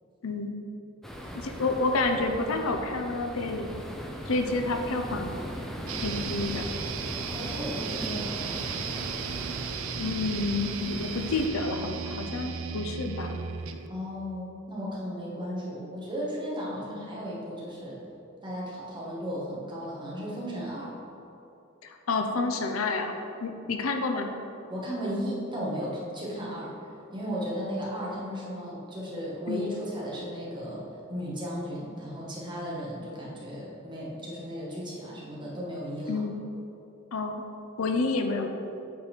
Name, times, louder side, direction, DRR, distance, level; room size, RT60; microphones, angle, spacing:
voice 1, 0.2-0.5 1.3-3.8 4.3-5.3 6.0-6.7 10.0-13.3 21.8-23.1 23.4-24.3 29.5-29.7 36.1-36.4 37.1-37.4 37.8-38.5, left 3 dB, 75° left, 4 dB, 0.6 m, -29 dB
sound 1, 1.0-11.5, equal, ahead, 0.6 m, -38 dB
sound 2, 5.9-13.9, right 7 dB, 75° right, 0.5 m, -36 dB
voice 2, 7.3-8.6 13.9-18.0 18.4-20.9 24.7-26.7 27.1-30.8 31.1-36.2, equal, 20° right, -6 dB, 1.6 m, -35 dB
8.4 x 4.1 x 4.5 m, 2.8 s
head